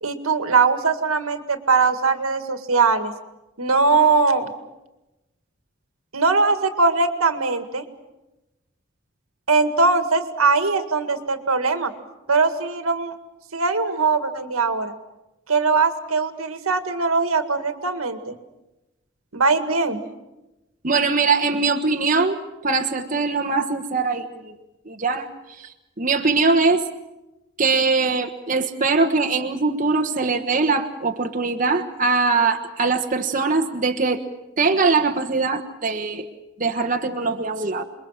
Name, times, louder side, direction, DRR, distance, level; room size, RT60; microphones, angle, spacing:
voice 1, 0.0-3.1 3.6-4.5 6.1-7.8 9.5-11.9 12.3-13.1 13.5-14.9 15.5-18.3 19.3-20.0, right 4 dB, 90° right, 8 dB, 2.0 m, -20 dB
voice 2, 20.8-22.4 22.6-24.5 24.9-25.3 26.0-26.8 27.6-34.2 34.6-36.2 36.6-37.8, right 4 dB, 40° right, 4 dB, 1.3 m, -21 dB
27.5 x 22.0 x 7.4 m, 1.0 s
head